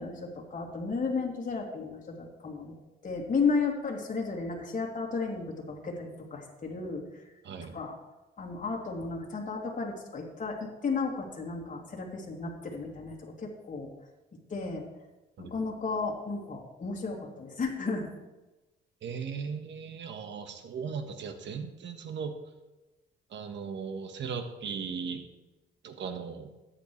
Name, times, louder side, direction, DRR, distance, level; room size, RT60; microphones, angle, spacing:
voice 1, 0.0-2.8 3.0-7.2 7.6-8.0 8.4-13.9 14.5-14.8 15.4-18.1, left 4 dB, 40° left, -1 dB, 2.8 m, -33 dB
voice 2, 7.4-7.8 15.4-15.5 19.0-22.4 23.3-25.3 25.8-26.5, right 6 dB, 65° right, 7 dB, 1.4 m, -37 dB
13.5 x 9.7 x 3.2 m, 1.1 s
cardioid pair, 90°, 20 cm